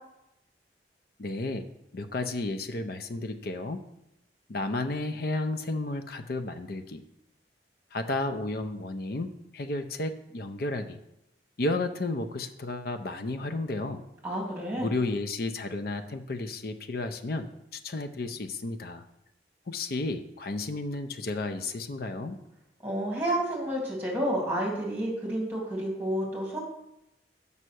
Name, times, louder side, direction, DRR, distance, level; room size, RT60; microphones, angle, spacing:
voice 1, 1.2-1.6 1.9-3.8 4.5-7.0 7.9-11.0 11.6-14.0 14.8-19.0 19.7-22.4, left 2 dB, 55° left, 8 dB, 0.6 m, -32 dB
voice 2, 14.2-14.9 22.8-26.6, right 1 dB, 10° right, -3 dB, 2.3 m, -30 dB
5.5 x 5.5 x 6.3 m, 0.86 s
head